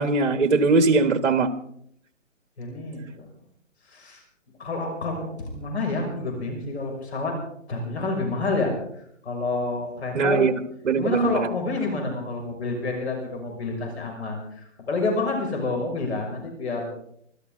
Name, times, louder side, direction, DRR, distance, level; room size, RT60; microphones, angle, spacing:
voice 1, 0.0-1.5 10.1-10.5 10.8-11.5, right 4 dB, 60° right, 10 dB, 1.7 m, -20 dB
voice 2, 2.6-3.3 3.9-4.2 4.6-7.3 7.7-8.8 9.2-10.4 11.0-16.9, left 3 dB, 55° left, 2 dB, 6.2 m, -28 dB
26.0 x 13.5 x 3.9 m, 0.67 s
hypercardioid pair, 170°, 39 cm